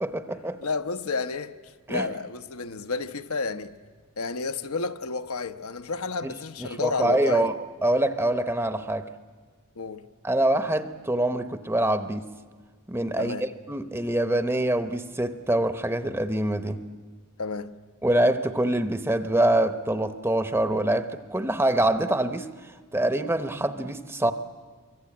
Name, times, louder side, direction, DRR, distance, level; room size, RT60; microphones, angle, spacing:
voice 1, 0.0-0.6 1.9-2.1 6.2-6.3 6.6-7.5 7.8-9.1 10.2-12.2 12.9-16.8 18.0-22.5 22.9-24.3, right 1 dB, 10° right, 0.8 m, -25 dB
voice 2, 0.6-1.5 1.9-3.7 4.2-7.5 9.8-10.0 13.2-13.5 17.4-17.7, left 4 dB, 75° left, 1.0 m, -31 dB
25.0 x 24.0 x 8.7 m
head